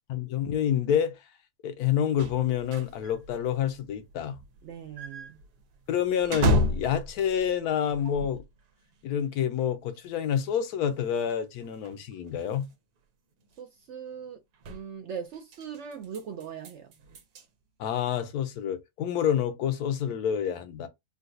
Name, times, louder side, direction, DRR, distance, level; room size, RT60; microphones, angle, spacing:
voice 1, 0.1-1.2 1.6-4.4 5.9-8.4 9.0-12.7 17.8-20.9, left 9 dB, 75° left, 1.1 m, -28 dB
sound 1, 2.2-8.6 8.9-9.0 9.6-9.7 10.4-10.5 10.7-10.8 11.0-11.3 11.6-12.7 13.4-13.6 14.5-14.8 15.3-17.5, left 1 dB, 90° right, 1.3 m, -33 dB
voice 2, 4.6-5.4 13.6-14.4 14.7-16.9, right 7 dB, 70° right, 0.7 m, -40 dB
3.8 x 2.2 x 2.6 m
omnidirectional pair, 1.7 m